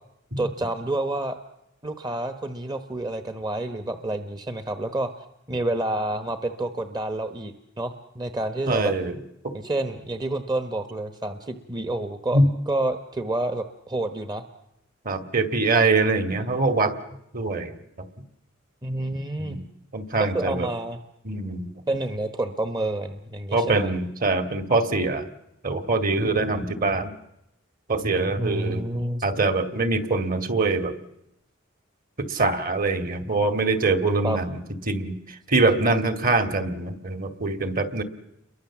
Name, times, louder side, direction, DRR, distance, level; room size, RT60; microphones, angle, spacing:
voice 1, 0.4-1.4 1.8-5.1 5.5-8.9 9.5-14.4 16.3-16.5 18.8-19.6 20.2-21.0 21.9-23.9 28.4-29.2 34.2-34.4, right 1 dB, 20° right, 8 dB, 1.2 m, -29 dB
voice 2, 8.7-9.1 9.4-9.5 12.3-12.5 15.0-17.0 17.3-17.7 19.4-19.6 19.9-20.7 21.2-21.7 23.5-25.3 25.6-27.1 27.9-28.8 29.2-30.9 32.2-34.6 34.9-35.2 35.5-38.0, right 3 dB, 45° right, 9 dB, 2.2 m, -23 dB
30.0 x 23.0 x 7.3 m, 0.82 s
head